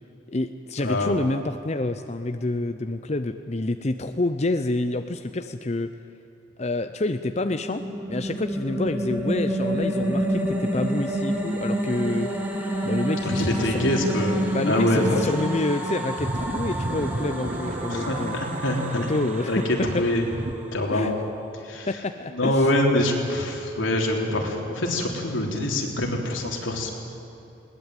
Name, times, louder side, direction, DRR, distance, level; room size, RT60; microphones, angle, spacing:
voice 1, 0.3-5.9 6.6-7.8 8.1-12.3 12.8-13.9 14.5-18.4 19.0-20.0 20.9-21.1 21.9-22.7, left 2 dB, 35° left, 8 dB, 0.6 m, -28 dB
voice 2, 0.8-1.2 13.2-14.4 14.7-15.2 17.9-19.1 19.5-19.6 20.0-20.2 20.7-21.2 21.6-21.9 22.3-26.9, left 1 dB, 85° left, 1 dB, 3.6 m, -25 dB
sound 1, 7.3-20.7, right 1 dB, 10° right, 2.5 m, -28 dB
Planet Fog, 14.7-20.5, right 2 dB, 40° right, 0.8 m, -34 dB
21.0 x 19.0 x 9.1 m, 3.0 s
head